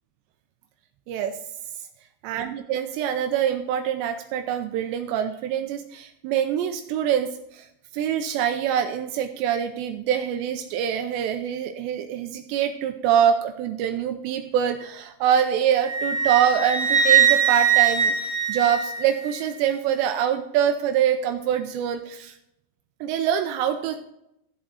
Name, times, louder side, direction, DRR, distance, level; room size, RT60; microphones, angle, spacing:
voice 1, 1.1-1.4 2.2-7.7 7.9-22.4 23.0-24.0, right 9 dB, 85° right, 5 dB, 2.9 m, -25 dB
Wind instrument woodwind instrument, 15.8-19.3, right 8 dB, 55° right, 2.3 m, -21 dB
14.0 x 7.9 x 4.1 m, 0.80 s
omnidirectional pair, 5.1 m